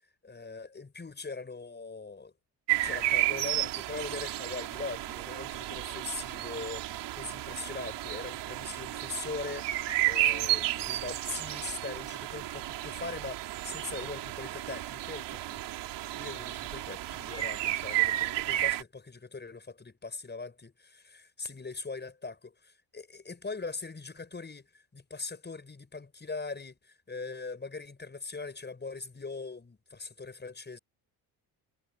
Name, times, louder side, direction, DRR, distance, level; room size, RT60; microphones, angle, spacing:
voice 1, 0.0-2.3 2.8-15.7 15.9-30.8, left 4 dB, 25° left, 6.8 m, -41 dB
sound 1, 2.7-18.8, right 15 dB, 75° right, 4.2 m, -32 dB
supercardioid pair, 80°, 42 cm